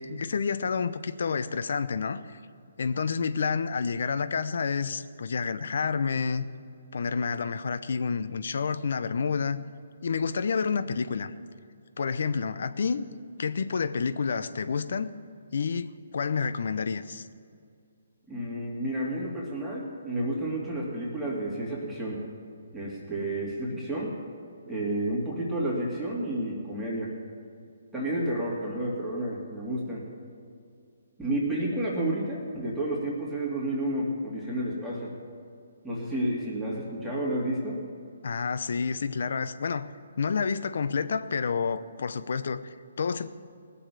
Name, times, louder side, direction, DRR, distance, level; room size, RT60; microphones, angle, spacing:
voice 1, 0.0-2.4 2.8-6.4 6.9-9.6 10.0-11.3 12.0-13.0 13.4-15.1 15.5-17.3 38.2-39.9 40.2-43.3, left 5 dB, 65° left, 13 dB, 0.7 m, -29 dB
voice 2, 18.3-22.2 22.7-24.2 24.7-27.1 27.9-30.1 31.2-35.1 35.8-37.8, right 1 dB, 5° right, -7 dB, 2.8 m, -31 dB
18.5 x 7.1 x 7.0 m, 2.3 s
hypercardioid pair, 140°, 0 cm